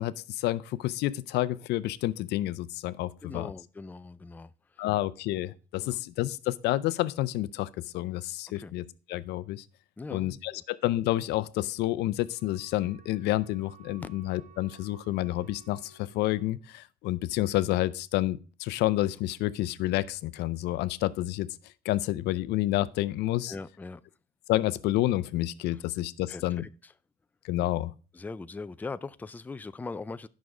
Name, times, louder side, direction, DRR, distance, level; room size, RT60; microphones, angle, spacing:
voice 1, 0.0-3.5 4.8-9.6 10.1-21.5 21.8-23.5 24.5-26.6 27.4-27.9, left 16 dB, 80° left, 0.5 m, -29 dB
voice 2, 3.2-4.9 5.8-6.0 8.6-8.7 10.0-10.6 23.5-24.0 26.3-26.9 28.1-30.3, left 3 dB, 10° left, 0.4 m, -41 dB
Wind instrument woodwind instrument, 12.2-16.5, right 6 dB, 55° right, 1.3 m, -57 dB
9.4 x 6.2 x 4.9 m
cardioid pair, 110°, 17 cm